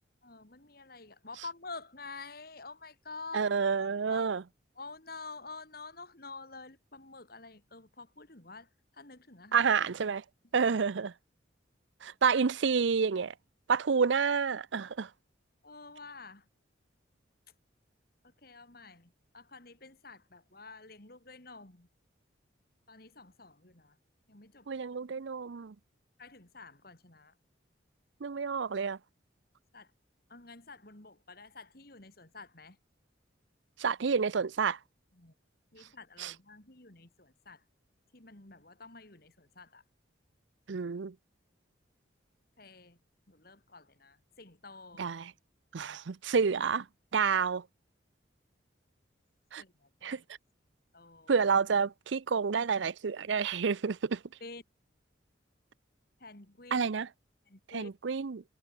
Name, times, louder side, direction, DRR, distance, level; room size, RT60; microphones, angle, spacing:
voice 1, 0.2-3.4 3.7-4.4 4.8-8.7 8.9-9.7 10.6-10.7 15.6-16.5 18.4-21.9 22.9-24.0 24.3-24.7 26.2-27.3 29.7-29.9 30.3-32.8 35.1-35.3 35.7-37.6 38.1-39.8 42.6-43.0 43.3-45.1 49.6-50.2 50.9-51.3 54.4-54.6 56.2-56.9 57.5-57.9, left 3 dB, 50° left, 2.9 m, -49 dB
voice 2, 3.3-4.4 9.5-10.2 10.5-11.1 12.0-13.3 13.7-15.1 24.7-25.7 28.2-29.0 33.8-34.8 36.2-36.3 40.7-41.1 45.0-45.3 45.7-46.8 47.1-47.6 49.5-49.6 50.0-50.2 51.3-54.2 56.7-57.1 57.7-58.4, right 5 dB, 70° right, 0.5 m, -29 dB
head